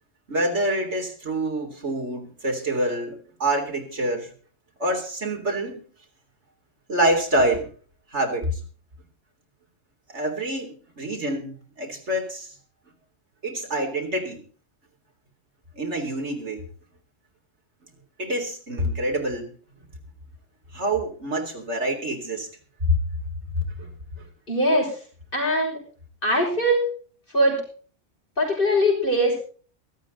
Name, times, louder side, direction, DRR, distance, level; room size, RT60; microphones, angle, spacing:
voice 1, 0.3-4.3 4.8-5.8 6.9-7.7 8.1-8.6 10.1-12.5 13.4-14.4 15.8-16.6 18.2-19.5 20.7-22.5 22.8-23.0 23.6-24.3, right 1 dB, 65° right, 2 dB, 3.8 m, -26 dB
voice 2, 24.5-25.0 25.3-25.8 26.2-26.8 27.3-27.6 28.4-29.4, equal, 45° left, -1 dB, 6.0 m, -21 dB
17.5 x 13.5 x 4.0 m, 0.41 s
omnidirectional pair, 1.3 m